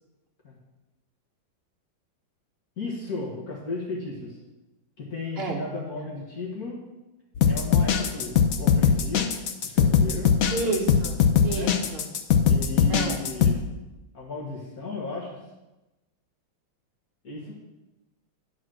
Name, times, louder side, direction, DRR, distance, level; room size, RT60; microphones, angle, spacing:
voice 1, 2.8-4.4 5.0-6.8 7.5-9.3 9.6-10.3 11.5-11.7 12.5-13.6 14.1-15.4 17.2-17.5, left 2 dB, 50° left, -4 dB, 1.8 m, -35 dB
sound 1, 7.3-13.5, left 7 dB, 65° left, 0.9 m, -21 dB
voice 2, 10.5-12.1 12.9-13.2, right 2 dB, 30° right, -1 dB, 1.6 m, -30 dB
10.5 x 4.9 x 6.2 m, 1.0 s
omnidirectional pair, 2.3 m